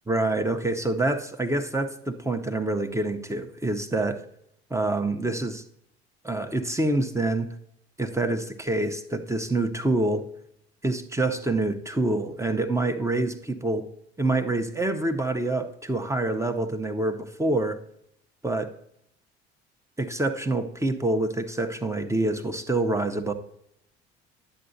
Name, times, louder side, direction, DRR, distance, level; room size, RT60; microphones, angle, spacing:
voice 1, 0.1-4.2 4.7-5.6 6.2-7.5 8.0-10.2 10.8-13.8 14.2-17.8 18.4-18.7 20.0-23.3, right 2 dB, 10° right, 6 dB, 0.8 m, -26 dB
11.0 x 7.6 x 2.7 m, 0.74 s
hypercardioid pair, 55°, 32 cm